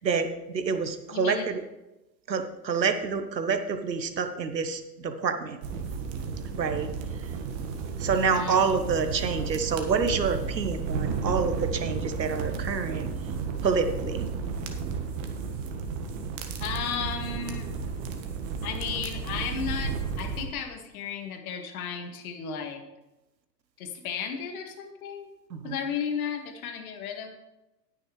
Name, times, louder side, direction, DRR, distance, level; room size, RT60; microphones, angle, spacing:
voice 1, 0.0-1.6 2.3-5.6 6.4-6.9 7.2-7.4 8.0-13.1 13.6-14.3 25.5-25.8, right 5 dB, 85° right, 8 dB, 1.2 m, -28 dB
voice 2, 1.1-1.5 8.2-8.6 16.6-17.7 18.6-22.8 23.8-25.3 25.6-27.3, left 7 dB, 55° left, 5 dB, 1.9 m, -34 dB
sound 1, 5.6-20.5, right 5 dB, 50° right, 1.6 m, -33 dB
19.0 x 6.4 x 3.2 m, 0.97 s
figure-of-eight pair, 95°, 50 cm